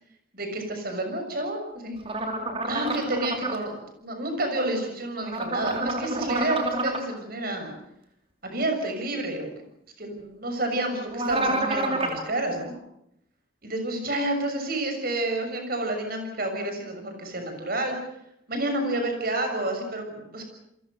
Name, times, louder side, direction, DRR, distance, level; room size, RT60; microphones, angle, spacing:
voice 1, 0.3-2.0 2.7-7.7 8.4-9.5 10.0-12.7 13.6-18.0 18.5-20.4, right 1 dB, 50° right, 5 dB, 6.6 m, -29 dB
sound 1, 2.1-3.6 5.2-7.0 11.1-12.2, right 2 dB, 30° right, 3.5 m, -28 dB
29.0 x 23.0 x 6.7 m, 0.80 s
head